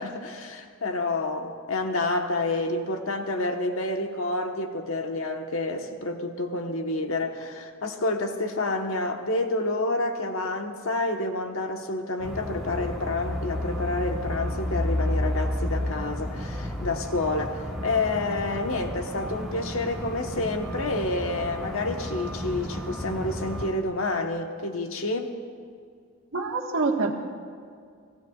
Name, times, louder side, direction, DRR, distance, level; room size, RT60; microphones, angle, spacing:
voice 1, 0.0-25.4, left 2 dB, 85° left, 4 dB, 1.3 m, -29 dB
sound 1, 12.2-23.7, left 1 dB, ahead, 1.7 m, -32 dB
voice 2, 26.3-27.1, right 3 dB, 85° right, 1 dB, 1.6 m, -25 dB
30.0 x 16.0 x 2.4 m, 2.2 s
head